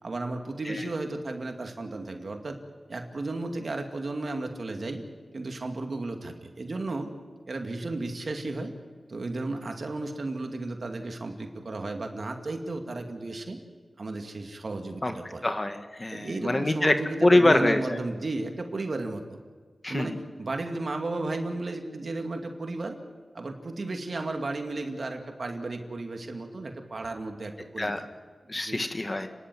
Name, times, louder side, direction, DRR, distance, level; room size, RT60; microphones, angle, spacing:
voice 1, 0.0-2.6 2.9-5.0 5.3-7.1 7.5-8.7 9.1-13.6 14.0-15.5 16.1-19.4 19.9-23.0 23.3-28.0 28.5-28.8, right 2 dB, 60° right, 4 dB, 2.4 m, -34 dB
voice 2, 15.4-16.9 17.2-18.0 19.8-20.1 27.8-28.0 28.5-29.3, left 2 dB, 35° left, 7 dB, 1.9 m, -24 dB
30.0 x 11.0 x 9.4 m, 1.5 s
cardioid pair, 50°, 0 cm